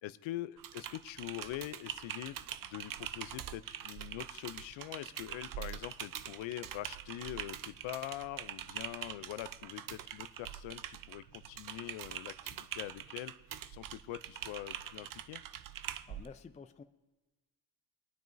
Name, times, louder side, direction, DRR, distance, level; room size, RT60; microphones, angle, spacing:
voice 1, 0.0-13.3 13.7-15.4, left 15 dB, 85° left, 16 dB, 0.5 m, -44 dB
Typing, 0.6-16.3, right 10 dB, 50° right, 0.5 m, -44 dB
voice 2, 15.8-16.8, left 5 dB, 15° left, 10 dB, 0.4 m, -52 dB
21.5 x 9.3 x 2.6 m, 1.2 s
cardioid pair, 80°, 45 cm